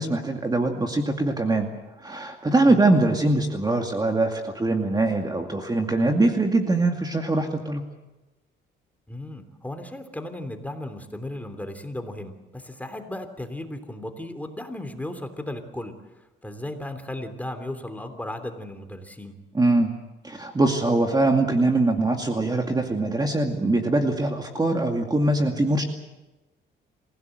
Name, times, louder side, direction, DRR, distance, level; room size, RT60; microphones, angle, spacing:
voice 1, 0.0-1.7 2.0-7.8 19.5-19.9 20.2-25.8, right 2 dB, 20° right, 3 dB, 2.4 m, -22 dB
voice 2, 9.1-15.9 16.4-19.4, left 1 dB, 10° left, 7 dB, 3.2 m, -35 dB
27.0 x 16.5 x 7.9 m, 1.0 s
cardioid pair, 90°, 20 cm